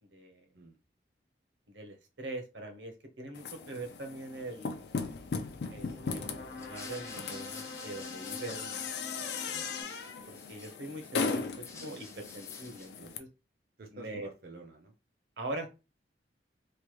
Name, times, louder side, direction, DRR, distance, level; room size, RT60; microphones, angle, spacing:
voice 1, 0.1-0.4 1.7-4.8 5.7-8.8 10.3-13.3 13.9-14.3 15.4-15.7, right 2 dB, 85° right, 4 dB, 0.8 m, -42 dB
sound 1, 3.3-13.2, left 4 dB, 65° left, 0.4 m, -38 dB
sound 2, 5.3-9.8, left 3 dB, 85° left, 0.9 m, -45 dB
sound 3, 6.5-9.2 9.4-11.1 11.4-13.1, left 3 dB, 15° left, 0.6 m, -51 dB
voice 2, 9.5-9.8 13.0-13.2 13.8-15.0, right 2 dB, 55° right, 2 dB, 0.5 m, -50 dB
3.1 x 2.3 x 3.0 m, 0.28 s
head